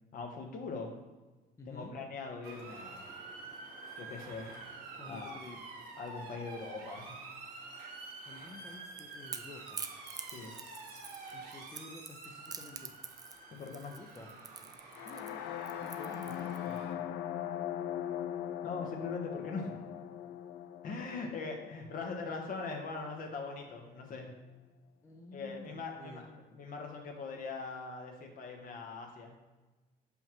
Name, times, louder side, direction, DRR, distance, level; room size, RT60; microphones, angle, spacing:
voice 1, 0.1-0.9 1.7-3.2 4.0-4.7 5.1-5.4 6.0-7.2 10.3-10.5 13.5-14.0 18.6-19.9 20.8-24.3 25.3-29.3, left 4 dB, 55° left, 2 dB, 1.1 m, -41 dB
voice 2, 1.6-1.9 5.0-5.6 8.3-9.8 11.3-12.9 13.9-14.3 15.1-15.4 15.8-16.8 25.0-26.3, left 2 dB, 15° left, 1 dB, 0.6 m, -51 dB
Motor vehicle (road) / Siren, 2.4-16.9, right 3 dB, 70° right, 1.6 m, -48 dB
Crackle / Crack, 8.6-16.8, right 5 dB, 20° right, 0.3 m, -46 dB
sound 1, 14.9-22.8, left 10 dB, 80° left, 0.4 m, -40 dB
5.7 x 5.5 x 3.0 m, 1.2 s
cardioid pair, 110°, 17 cm